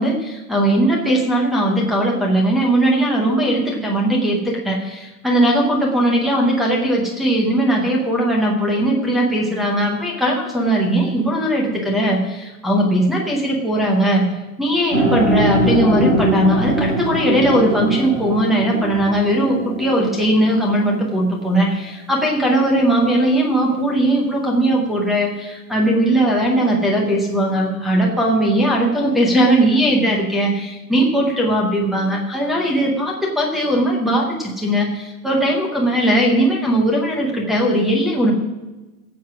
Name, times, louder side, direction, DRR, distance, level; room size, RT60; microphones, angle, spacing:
voice 1, 0.0-14.2 14.6-38.3, right 1 dB, ahead, -1 dB, 0.7 m, -19 dB
sound 1, 14.9-21.0, right 1 dB, 25° right, 4.0 m, -22 dB
17.0 x 7.7 x 6.0 m, 1.1 s
supercardioid pair, 175°, 46 cm